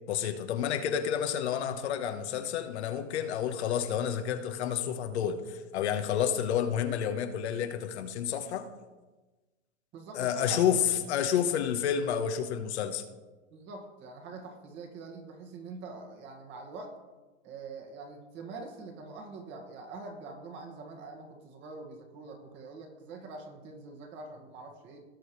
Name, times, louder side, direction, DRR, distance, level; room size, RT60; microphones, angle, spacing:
voice 1, 0.1-8.7 10.1-13.0, left 9 dB, 60° left, 8 dB, 1.2 m, -30 dB
voice 2, 9.9-11.0 13.5-17.0 17.4-25.1, right 3 dB, 30° right, 2 dB, 1.8 m, -44 dB
18.5 x 6.3 x 3.2 m, 1.2 s
hypercardioid pair, 140°, 37 cm